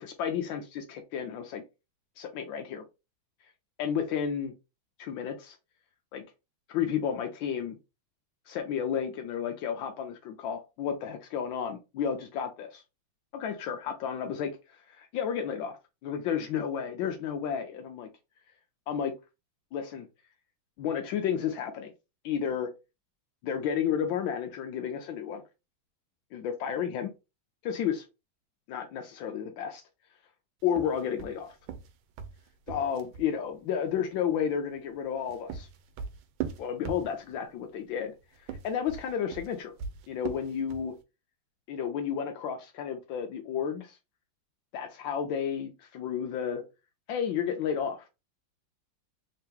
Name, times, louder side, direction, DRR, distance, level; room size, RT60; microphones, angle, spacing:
voice 1, 0.0-1.6 2.2-2.8 3.8-4.5 5.0-5.6 6.1-6.2 6.7-7.8 8.5-12.8 13.3-14.5 14.9-15.8 16.0-18.1 18.9-19.1 19.7-20.1 20.8-21.9 22.2-22.7 23.4-25.4 26.3-27.1 27.6-28.0 28.7-29.8 30.6-31.6 32.7-35.7 36.6-38.1 38.6-39.7 40.1-40.9 41.7-44.0 44.7-46.6 47.1-48.1, left 8 dB, 80° left, 5 dB, 1.3 m, -32 dB
sound 1, 30.7-33.3 35.0-37.5 38.3-41.0, right 7 dB, 85° right, 1.4 m, -40 dB
3.6 x 2.9 x 3.4 m, 0.27 s
omnidirectional pair, 2.2 m